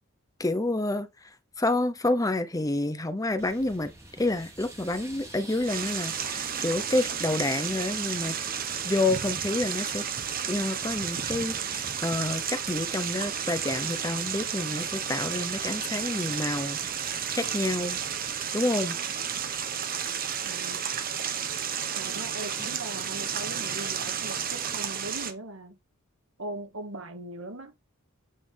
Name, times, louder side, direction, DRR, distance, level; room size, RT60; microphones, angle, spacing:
voice 1, 0.4-1.1 1.6-3.9 4.2-8.4 8.8-10.0 10.5-18.0 18.5-19.0 22.6-22.7, left 2 dB, 15° left, 0.8 m, -29 dB
sound 1, 3.4-18.5, right 1 dB, 15° right, 2.5 m, -50 dB
sound 2, 5.6-25.3, right 8 dB, 45° right, 1.2 m, -32 dB
voice 2, 20.4-20.8 22.0-25.8 26.4-27.7, right 1 dB, 70° right, 1.9 m, -40 dB
8.6 x 5.8 x 3.5 m
head